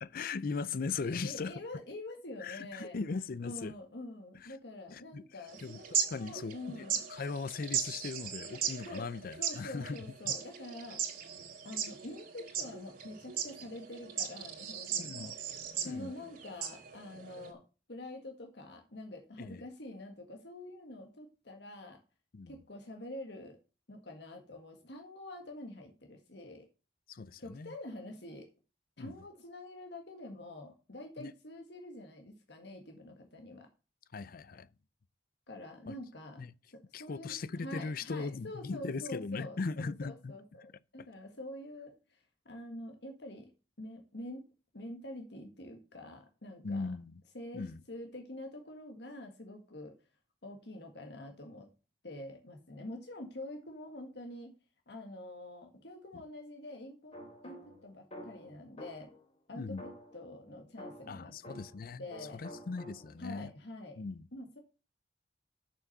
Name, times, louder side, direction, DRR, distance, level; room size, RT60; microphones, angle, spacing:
voice 1, 0.0-1.5 2.4-3.7 4.9-5.2 5.6-10.0 15.0-15.3 15.8-16.1 19.4-19.6 22.3-22.5 27.1-27.7 29.0-29.1 31.2-31.3 34.1-34.7 35.9-36.0 36.4-36.5 36.9-40.3 46.6-47.2 47.5-47.8 59.5-59.8 61.1-62.0 62.3-63.5 64.0-64.2, left 4 dB, 55° left, 0.5 m, -39 dB
voice 2, 1.0-3.0 3.4-7.1 8.9-9.1 9.4-11.0 11.6-15.4 15.8-17.6 17.9-22.0 22.5-23.6 23.9-26.7 27.4-28.5 29.0-33.7 35.5-36.4 36.7-42.2 42.5-43.5 43.8-44.5 44.7-46.9 47.3-50.0 50.4-51.7 52.0-54.5 54.9-57.2 57.4-59.1 59.5-61.6 62.0-62.4 63.2-64.0 64.3-64.6, left 1 dB, 70° left, 1.7 m, -46 dB
sound 1, 5.5-17.5, right 7 dB, 55° right, 2.5 m, -38 dB
sound 2, 57.1-59.3 59.8-61.9 62.1-63.3, equal, 35° left, 3.8 m, -50 dB
7.1 x 6.2 x 6.6 m
head